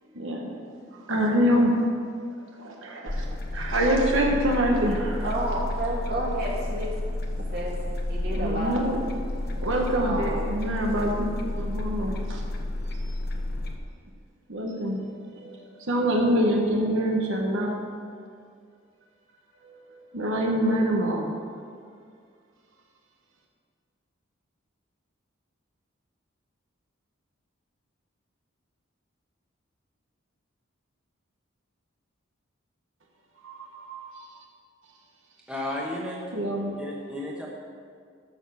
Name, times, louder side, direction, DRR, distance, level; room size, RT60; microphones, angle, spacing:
voice 1, 0.1-0.6 0.9-1.9 2.6-3.2 3.5-5.3 8.3-9.0 9.3-11.3 11.6-12.4 12.9-13.1 14.5-15.0 15.4-15.6 15.9-17.7 20.1-21.3 33.4-34.3 36.3-36.8, equal, 75° right, 0 dB, 1.2 m, -25 dB
sound 1, 3.1-13.8, left 1 dB, 50° left, 1.0 m, -31 dB
voice 2, 5.2-6.9 7.5-7.8 8.1-8.7 9.9-10.3 10.6-10.7, right 1 dB, 50° right, -4 dB, 2.5 m, -30 dB
voice 3, 35.5-36.3 36.8-37.5, left 1 dB, 5° right, -3 dB, 1.1 m, -33 dB
13.5 x 6.2 x 5.8 m, 2.1 s
head